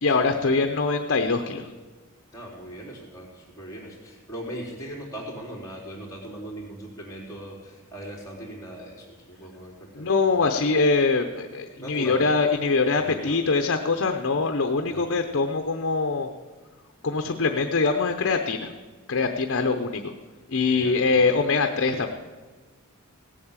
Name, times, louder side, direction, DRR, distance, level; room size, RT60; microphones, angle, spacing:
voice 1, 0.0-1.7 9.9-16.3 17.0-18.7 19.1-20.1 20.5-22.1, left 4 dB, 60° left, 6 dB, 0.7 m, -23 dB
voice 2, 2.3-10.4 11.8-12.2 13.0-13.4 14.9-15.3 20.7-21.4 21.9-22.1, right 1 dB, 15° left, -4 dB, 4.0 m, -40 dB
16.5 x 8.5 x 7.3 m, 1.4 s
head